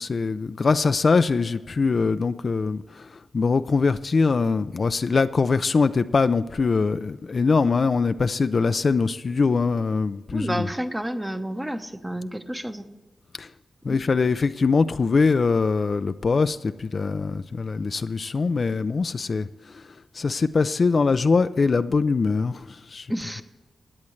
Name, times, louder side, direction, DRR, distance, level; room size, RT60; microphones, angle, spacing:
voice 1, 0.0-3.1 3.3-10.7 13.4-13.5 13.8-19.5 19.7-19.8 20.1-23.1, left 4 dB, 50° left, 11 dB, 0.4 m, -22 dB
voice 2, 10.3-12.9 13.8-14.0 23.1-23.4, right 1 dB, 10° right, 8 dB, 0.9 m, -30 dB
17.5 x 9.6 x 3.2 m, 1.2 s
wide cardioid pair, 105°, 0 cm